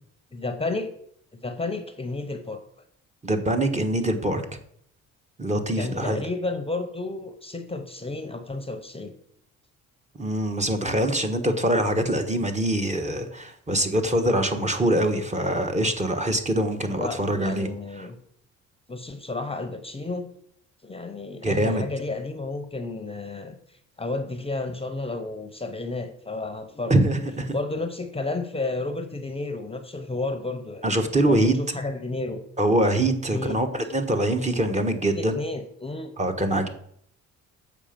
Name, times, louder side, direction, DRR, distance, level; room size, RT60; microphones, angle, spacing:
voice 1, 0.3-0.9 1.3-2.6 5.7-9.1 16.8-18.2 18.9-20.3 20.8-27.0 27.5-30.8 31.3-32.4 33.3-33.6 35.1-36.1, left 2 dB, 15° left, 8 dB, 0.8 m, -32 dB
voice 2, 3.2-4.4 5.4-6.2 10.2-17.7 18.0-18.1 21.4-21.8 26.9-27.5 30.8-31.5 32.6-35.4 36.2-36.7, right 1 dB, 20° right, 5 dB, 1.1 m, -24 dB
7.3 x 4.9 x 5.1 m, 0.67 s
supercardioid pair, 75°, 33 cm